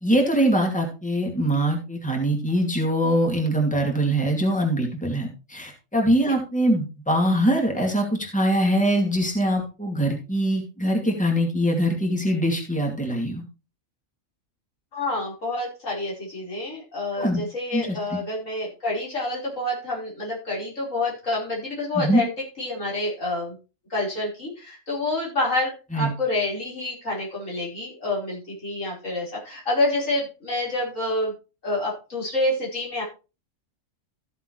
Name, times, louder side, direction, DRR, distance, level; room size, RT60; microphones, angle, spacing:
voice 1, 0.0-8.1 8.3-13.4 17.1-17.4 17.7-18.2 22.0-22.2 25.9-26.1, right 1 dB, 5° left, 1 dB, 2.5 m, -23 dB
voice 2, 14.9-23.6 23.9-31.3 31.6-33.0, left 2 dB, 75° left, -5 dB, 5.2 m, -28 dB
14.5 x 7.5 x 3.3 m, 0.31 s
omnidirectional pair, 1.4 m